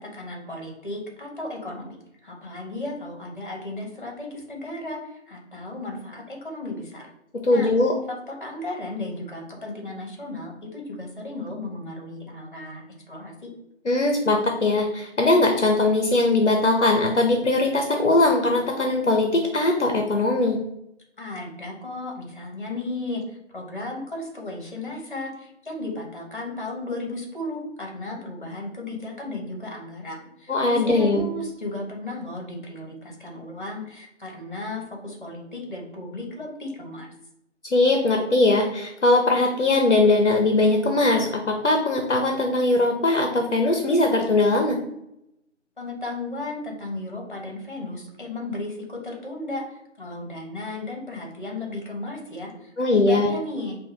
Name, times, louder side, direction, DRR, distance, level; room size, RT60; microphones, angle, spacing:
voice 1, 0.0-7.1 7.5-7.7 8.1-12.8 13.1-13.5 21.2-37.1 45.8-53.8, left 2 dB, 40° left, 0 dB, 1.2 m, -35 dB
voice 2, 7.4-7.9 13.8-20.6 30.5-31.3 37.7-44.8 52.8-53.3, left 2 dB, 70° left, 2 dB, 0.7 m, -20 dB
4.8 x 2.4 x 2.8 m, 0.80 s
figure-of-eight pair, 170°, 36 cm